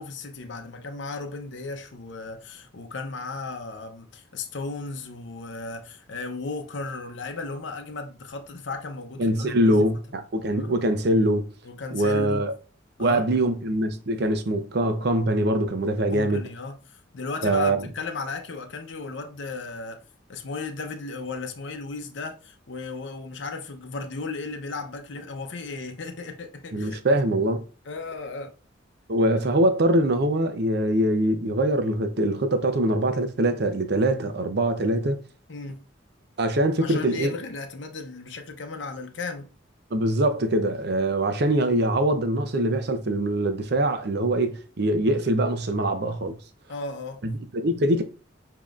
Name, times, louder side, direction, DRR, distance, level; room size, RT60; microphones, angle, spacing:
voice 1, 0.0-9.9 10.6-10.8 11.6-12.4 13.0-13.2 16.1-27.2 27.9-28.5 29.3-29.4 35.5-35.8 36.8-39.5 46.7-47.2, left 3 dB, 65° left, 0.7 m, -35 dB
voice 2, 9.2-11.5 11.9-12.5 13.0-16.4 17.4-17.8 26.7-27.6 29.1-35.2 36.4-37.3 39.9-46.4 47.2-48.0, right 1 dB, 55° right, 0.6 m, -23 dB
7.0 x 2.9 x 2.4 m
head